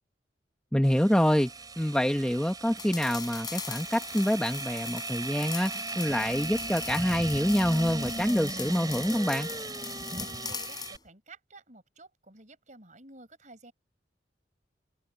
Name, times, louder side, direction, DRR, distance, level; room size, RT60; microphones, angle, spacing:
voice 1, 0.7-1.5 1.8-9.5, equal, 5° left, 1.0 m, -26 dB
sound 1, 0.8-11.0, right 3 dB, 20° right, 3.9 m, -38 dB
sound 2, 2.8-11.0, left 7 dB, 20° left, 7.7 m, -41 dB
voice 2, 9.9-13.7, right 2 dB, 45° right, 6.2 m, -52 dB
head